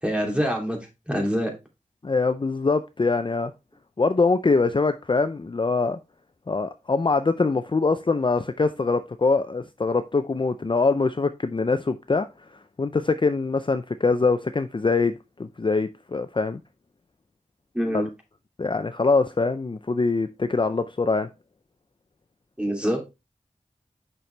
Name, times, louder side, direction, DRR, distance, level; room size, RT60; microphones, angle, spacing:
voice 1, 0.0-0.8 1.1-1.5 17.7-18.1 22.6-23.0, equal, 10° right, 2.7 m, -25 dB
voice 2, 2.0-3.5 4.0-6.0 6.5-12.3 12.8-16.6 17.9-18.1 18.6-21.3, left 3 dB, 40° left, 0.5 m, -23 dB
6.7 x 5.9 x 3.3 m
wide cardioid pair, 60°, 13 cm